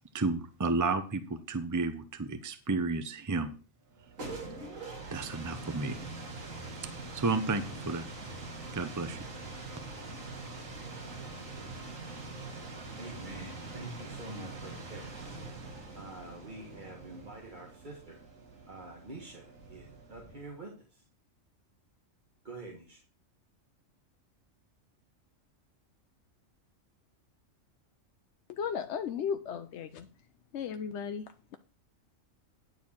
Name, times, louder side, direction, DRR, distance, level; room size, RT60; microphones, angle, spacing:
voice 1, 0.1-3.5 5.1-6.0 7.1-8.1 8.7-9.2, right 3 dB, 15° right, 9 dB, 0.7 m, -32 dB
sound 1, 3.9-20.6, right 3 dB, 85° right, 2.3 m, -44 dB
voice 2, 13.0-15.2 15.9-18.2 18.7-21.0 22.4-23.0, right 2 dB, 35° right, -1 dB, 1.7 m, -46 dB
voice 3, 28.5-30.1 30.5-31.6, left 7 dB, 65° left, 8 dB, 0.9 m, -35 dB
10.5 x 4.6 x 7.2 m, 0.37 s
omnidirectional pair, 1.4 m